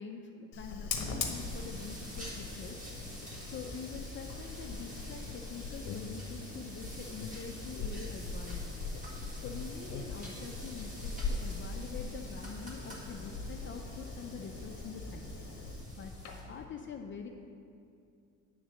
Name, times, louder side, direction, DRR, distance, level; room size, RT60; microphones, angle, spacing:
voice 1, 0.0-2.8 3.4-9.0 9.4-15.3 15.9-16.1 16.5-17.3, left 5 dB, 40° left, 3 dB, 0.5 m, -45 dB
Fire, 0.5-16.6, left 3 dB, 55° left, 1.0 m, -41 dB
sound 1, 1.3-16.4, right 1 dB, 25° right, 1.7 m, -50 dB
sound 2, 5.3-6.7 7.2-8.6 8.9-11.5, left 5 dB, 80° left, 0.6 m, -48 dB
8.5 x 4.0 x 6.2 m, 2.4 s
cardioid pair, 120°, 32 cm